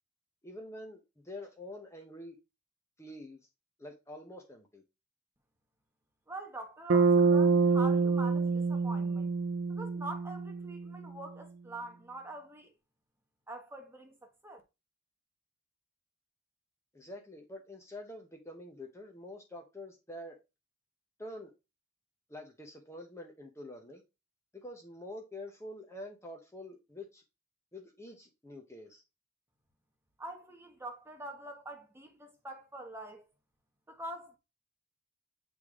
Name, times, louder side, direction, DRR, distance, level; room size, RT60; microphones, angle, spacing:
voice 1, 0.4-2.4 3.0-3.5 3.8-4.8 16.9-20.4 21.2-21.5 22.3-24.0 24.5-27.2 27.7-29.0, left 1 dB, 15° left, 0.9 m, -46 dB
voice 2, 6.3-9.3 9.7-12.7 13.5-14.6 30.2-33.2 33.9-34.4, right 1 dB, 10° right, 1.1 m, -44 dB
Bass guitar, 6.9-11.0, right 4 dB, 65° right, 0.6 m, -26 dB
8.1 x 3.3 x 3.6 m
head